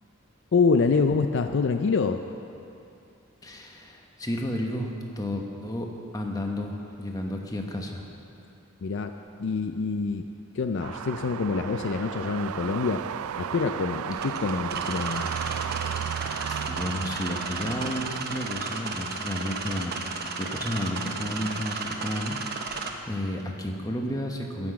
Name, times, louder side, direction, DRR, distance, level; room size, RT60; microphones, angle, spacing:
voice 1, 0.5-2.2 8.8-9.1 9.4-10.3 10.5-13.0 13.4-15.3, left 4 dB, 55° left, 7 dB, 0.4 m, -26 dB
voice 2, 3.4-8.1 16.5-20.0 20.4-24.7, left 1 dB, 15° left, 2 dB, 1.0 m, -32 dB
sound 1, 10.8-18.2, right 8 dB, 85° right, 0.3 m, -34 dB
sound 2, 14.1-22.9, right 4 dB, 50° right, 0.9 m, -34 dB
13.0 x 6.0 x 8.4 m, 2.7 s
head